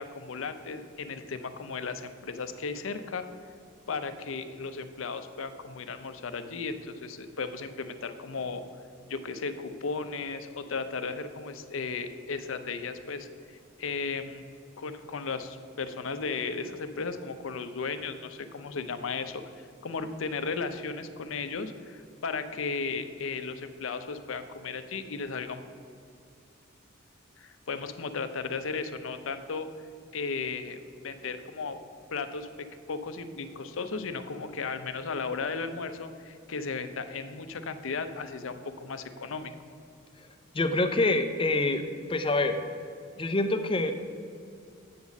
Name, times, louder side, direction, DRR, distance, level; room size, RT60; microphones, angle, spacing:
voice 1, 0.0-3.3 3.9-8.6 9.1-13.3 13.8-14.4 14.8-25.6 27.4-29.7 30.1-31.8 32.1-39.5, left 4 dB, 80° left, 10 dB, 0.6 m, -35 dB
voice 2, 40.5-41.8 42.1-42.6 43.2-43.9, left 2 dB, 25° left, 7 dB, 0.5 m, -26 dB
8.5 x 4.0 x 7.1 m, 2.4 s
head